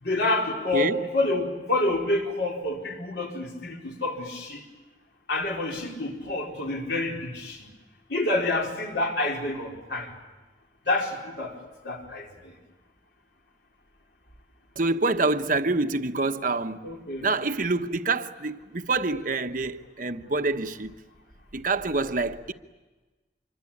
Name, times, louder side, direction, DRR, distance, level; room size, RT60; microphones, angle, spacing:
voice 1, 0.0-4.6 5.3-7.7 8.1-10.1 10.9-11.6 11.8-12.5 16.8-17.3, left 2 dB, 60° left, 4.4 m, -28 dB
voice 2, 14.8-16.9 17.2-20.9 21.5-22.5, right 3 dB, 50° right, 1.1 m, -26 dB
26.0 x 24.0 x 8.7 m
head